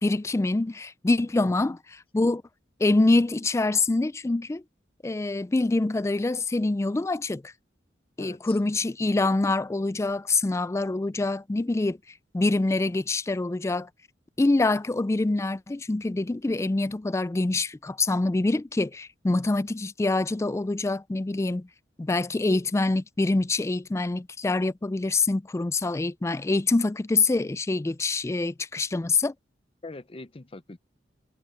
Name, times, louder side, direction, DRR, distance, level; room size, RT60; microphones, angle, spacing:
voice 1, 0.0-1.8 2.1-2.4 2.8-4.6 5.0-7.5 8.2-12.0 12.3-13.9 14.4-21.7 22.0-29.3, left 2 dB, 15° left, 0.3 m, -25 dB
voice 2, 1.4-1.8 8.2-8.6 29.8-30.8, left 2 dB, 30° left, 0.7 m, -43 dB
head